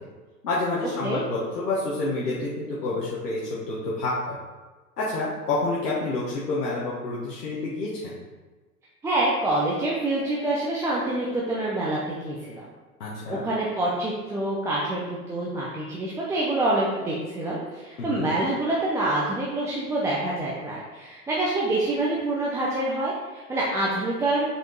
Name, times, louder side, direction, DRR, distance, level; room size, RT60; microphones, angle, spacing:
voice 1, 0.4-3.4 3.7-4.4 5.0-8.2 13.0-13.4 18.0-18.3, left 2 dB, 75° left, -7 dB, 1.6 m, -28 dB
voice 2, 9.0-12.6 13.3-15.0 15.3-24.4, right 2 dB, 5° right, -6 dB, 0.5 m, -26 dB
5.1 x 5.0 x 3.9 m, 1.3 s
hypercardioid pair, 105°, 48 cm